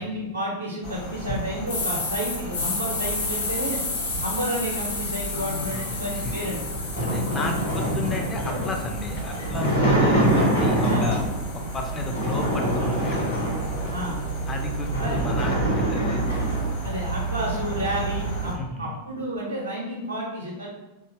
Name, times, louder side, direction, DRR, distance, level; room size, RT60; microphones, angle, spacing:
voice 1, 0.0-3.8 4.2-6.6 7.4-7.5 10.9-11.0 13.9-14.2 15.0-15.2 16.8-20.7, equal, 80° right, -4 dB, 0.5 m, -31 dB
sound 1, 0.8-18.6, right 3 dB, 40° left, 1.0 m, -32 dB
sound 2, 1.7-9.7 10.2-14.4, left 3 dB, 65° left, 0.7 m, -33 dB
voice 2, 5.3-6.3 7.0-11.2 11.5-13.4 14.5-16.2 18.6-19.0, left 2 dB, 20° left, 2 dB, 0.5 m, -33 dB
sound 3, 6.2-11.4 12.0-14.0 14.5-14.6 14.8-16.7, right 1 dB, 85° left, 1.3 m, -25 dB
2.9 x 2.4 x 2.8 m, 1.1 s
figure-of-eight pair, 90°, 0 cm